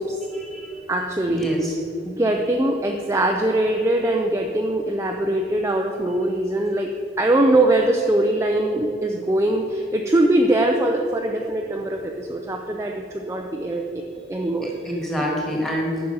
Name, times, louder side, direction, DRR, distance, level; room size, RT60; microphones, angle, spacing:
voice 1, 0.3-0.8 1.3-1.8 14.6-16.0, equal, ahead, -2 dB, 1.6 m, -27 dB
voice 2, 0.9-1.5 2.1-6.9 7.2-13.8 14.3-14.7, right 1 dB, 15° right, 2 dB, 0.4 m, -22 dB
9.6 x 6.1 x 5.4 m, 2.6 s
head